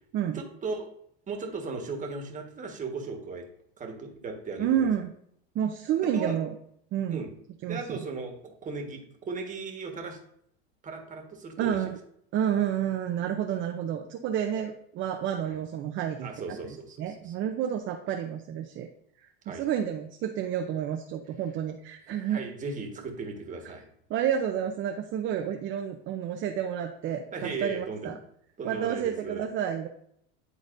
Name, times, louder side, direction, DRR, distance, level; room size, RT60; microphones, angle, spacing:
voice 1, 0.3-0.9 1.3-3.4 3.8-4.9 6.1-6.4 7.1-7.3 7.7-10.2 10.8-11.9 15.4-15.5 16.2-17.3 19.4-19.6 22.1-23.9 27.3-28.1 28.6-29.4, right 4 dB, 25° right, 2 dB, 1.5 m, -37 dB
voice 2, 4.6-5.1 5.5-6.5 6.9-7.2 7.6-8.0 11.6-12.0 12.3-18.9 19.5-22.4 24.1-28.1 28.6-29.9, right 9 dB, 40° right, 4 dB, 0.7 m, -30 dB
10.5 x 4.0 x 2.6 m, 0.69 s
supercardioid pair, 115°, 30 cm